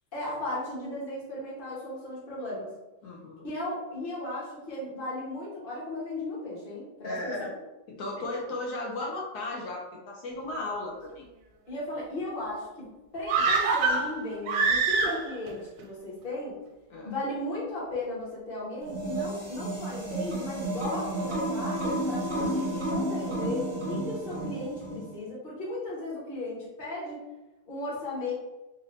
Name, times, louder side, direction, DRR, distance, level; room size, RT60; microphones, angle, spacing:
voice 1, 0.1-2.7 3.4-7.3 8.2-8.3 11.7-12.8 13.1-16.6 17.0-27.2 27.7-28.3, left 1 dB, 30° left, -6 dB, 1.2 m, -36 dB
voice 2, 3.0-3.5 7.0-7.5 7.9-11.3 16.9-17.1, left 2 dB, 70° left, -2 dB, 1.0 m, -35 dB
sound 1, 13.3-15.5 15.8-15.9, right 4 dB, 85° right, 1.4 m, -25 dB
sound 2, 18.8-25.1, right 1 dB, 45° right, 0.7 m, -32 dB
4.0 x 2.5 x 3.2 m, 1.0 s
omnidirectional pair, 2.2 m